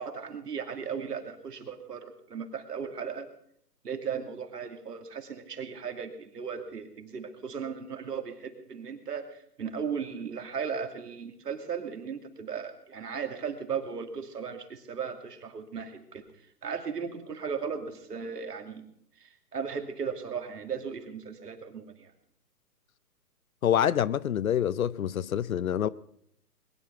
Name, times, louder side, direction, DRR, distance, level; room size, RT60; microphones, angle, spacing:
voice 1, 0.0-3.3 3.8-18.8 19.2-22.1, right 6 dB, 75° right, 2.6 m, -36 dB
voice 2, 23.6-25.9, left 10 dB, 60° left, 0.7 m, -26 dB
21.0 x 10.0 x 5.7 m
hypercardioid pair, 145°, 48 cm